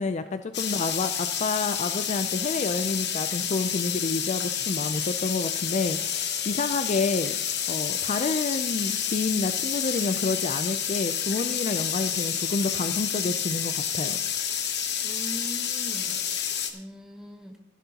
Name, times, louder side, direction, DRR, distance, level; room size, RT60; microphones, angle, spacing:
voice 1, 0.0-7.3 7.7-14.2, left 3 dB, 35° left, 9 dB, 0.4 m, -29 dB
sound 1, 0.5-16.7, left 8 dB, 55° left, 1.1 m, -29 dB
voice 2, 15.0-16.4 16.7-17.5, equal, 5° right, 3 dB, 1.1 m, -41 dB
15.5 x 11.0 x 2.9 m, 0.84 s
head